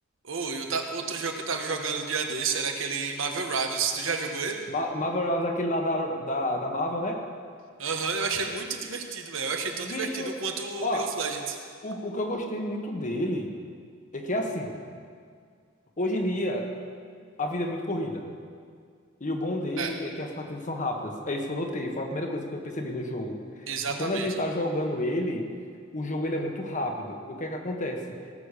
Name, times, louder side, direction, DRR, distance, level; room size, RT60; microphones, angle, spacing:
voice 1, 0.2-4.6 7.8-11.6 19.8-19.9 23.7-24.3, right 5 dB, 75° right, 3 dB, 1.4 m, -30 dB
voice 2, 4.7-7.2 9.8-10.4 10.8-11.1 11.8-13.5 14.1-14.8 16.0-16.7 17.4-18.3 19.2-23.4 24.0-25.5 25.9-28.0, left 1 dB, 40° left, 3 dB, 1.4 m, -30 dB
17.5 x 6.9 x 6.7 m, 2.1 s
head